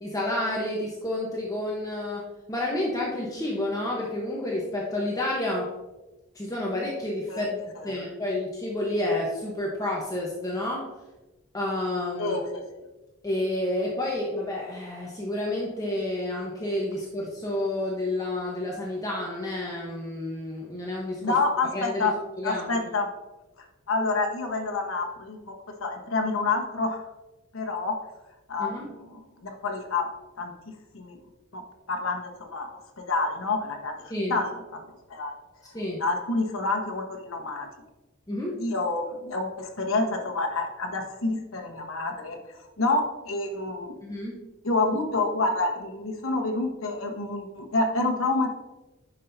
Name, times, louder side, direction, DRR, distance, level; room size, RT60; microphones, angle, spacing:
voice 1, 0.0-5.7 6.3-7.6 7.8-10.9 11.5-12.4 13.2-21.4 21.7-22.1 22.4-22.9 28.6-28.9 34.1-34.3 35.7-36.0 38.3-38.6 44.0-44.4, left 1 dB, 15° left, -3 dB, 0.9 m, -30 dB
voice 2, 12.2-12.6 21.2-22.1 22.4-23.1 23.9-25.5 25.8-27.0 27.5-28.0 28.5-30.1 30.4-30.5 30.9-31.2 31.5-31.6 31.9-34.5 34.7-34.8 35.1-35.3 36.0-37.7 38.6-42.4 42.8-43.9 44.6-48.5, left 3 dB, 70° left, 2 dB, 1.1 m, -28 dB
10.0 x 5.5 x 2.6 m, 1.1 s
head